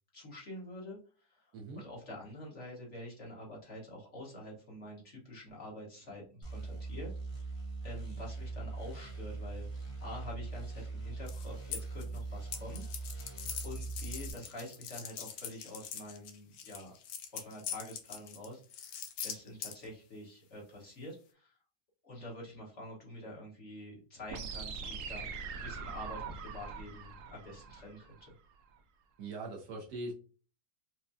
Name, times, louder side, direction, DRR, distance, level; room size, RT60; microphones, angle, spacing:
voice 1, 0.1-7.1 7.8-12.8 13.6-16.9 17.3-21.6 22.0-28.3, left 1 dB, 45° left, -4 dB, 1.4 m, -47 dB
sound 1, 6.4-14.3, right 3 dB, 20° left, 0.9 m, -41 dB
sound 2, 11.3-12.2 12.5-19.9, left 8 dB, 70° left, 0.9 m, -42 dB
sound 3, 24.3-28.3, right 5 dB, 90° right, 0.6 m, -42 dB
voice 2, 29.2-30.1, right 2 dB, 65° right, -1 dB, 1.1 m, -41 dB
4.6 x 2.2 x 2.6 m, 0.39 s
omnidirectional pair, 2.0 m